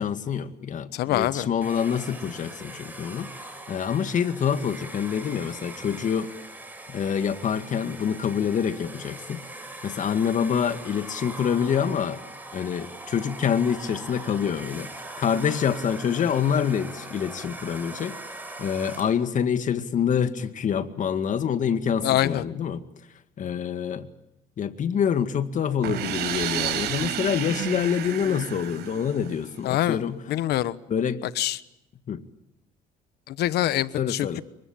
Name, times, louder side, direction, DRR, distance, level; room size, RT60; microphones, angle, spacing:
voice 1, 0.0-6.3 6.9-9.4 9.8-12.2 12.5-14.9 15.2-18.2 18.6-22.8 23.4-24.1 24.6-30.2 30.9-31.2 32.1-32.2 33.9-34.4, left 7 dB, 50° left, 10 dB, 2.1 m, -26 dB
voice 2, 0.9-1.5 22.0-22.4 29.6-30.0 30.3-30.8 31.4-31.6 33.3-34.4, left 13 dB, 75° left, 17 dB, 1.1 m, -24 dB
Domestic sounds home sounds, 1.6-19.3, right 2 dB, 10° right, 7.0 m, -41 dB
sound 1, 25.8-29.6, right 10 dB, 75° right, 5.2 m, -31 dB
27.0 x 24.0 x 8.9 m, 0.85 s
cardioid pair, 110°, 17 cm